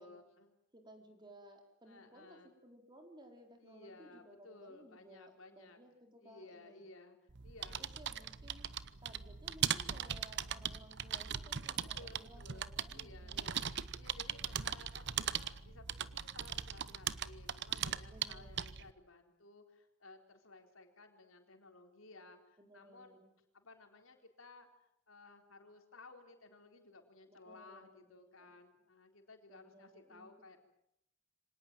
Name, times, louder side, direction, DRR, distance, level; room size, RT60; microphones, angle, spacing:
voice 1, 0.0-0.5 1.9-2.5 3.6-5.8 6.2-7.2 7.4-7.9 8.9-9.4 11.7-13.7 14.0-23.2 23.5-24.7 25.1-30.6, left 2 dB, 85° left, 5 dB, 3.9 m, -57 dB
voice 2, 0.7-6.9 7.7-13.6 18.0-18.8 22.6-23.3 27.3-28.6 29.5-30.3, right 1 dB, 25° right, 4 dB, 4.4 m, -59 dB
sound 1, 7.3-18.9, right 9 dB, 60° right, 0.9 m, -40 dB
25.0 x 18.5 x 9.0 m, 0.77 s
head